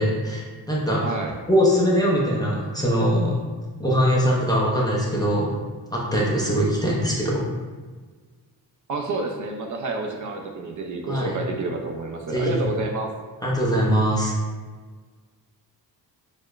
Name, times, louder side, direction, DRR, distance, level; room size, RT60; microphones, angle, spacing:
voice 1, 0.0-1.1 1.5-3.4 3.8-5.6 5.9-7.4 11.1-11.3 12.3-12.5 13.4-14.3, equal, 10° left, -6 dB, 0.4 m, -22 dB
voice 2, 1.0-1.3 8.9-13.1, right 3 dB, 50° right, 2 dB, 0.4 m, -29 dB
6.3 x 2.1 x 2.3 m, 1.4 s
wide cardioid pair, 170°, 42 cm